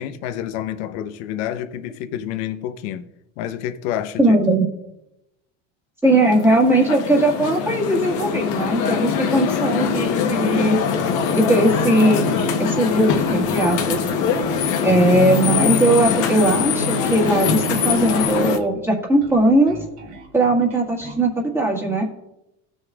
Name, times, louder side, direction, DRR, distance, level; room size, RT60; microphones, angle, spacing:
voice 1, 0.0-3.0 3.4-4.4, left 10 dB, 75° left, 0.9 m, -28 dB
voice 2, 4.2-4.7 6.0-10.8 11.3-12.3 12.6-14.0 14.8-19.8 20.3-22.0, right 1 dB, 5° right, 1.7 m, -19 dB
sound 1, 6.1-18.6, left 6 dB, 55° left, 1.2 m, -22 dB
Bass guitar, 11.7-21.3, right 4 dB, 40° right, 1.9 m, -41 dB
17.5 x 6.4 x 2.4 m
cardioid pair, 140°, 36 cm